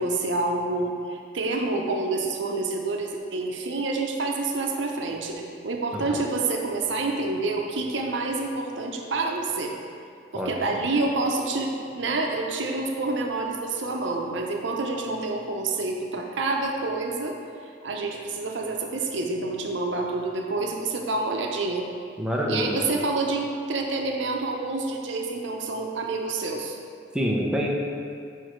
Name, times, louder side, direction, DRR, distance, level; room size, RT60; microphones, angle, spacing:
voice 1, 0.0-9.7 10.3-17.4 17.8-21.8 22.5-26.8, right 3 dB, 75° right, 1 dB, 0.7 m, -28 dB
voice 2, 22.2-22.8 27.1-27.7, equal, 5° right, -2 dB, 0.6 m, -26 dB
6.3 x 4.6 x 4.5 m, 2.3 s
head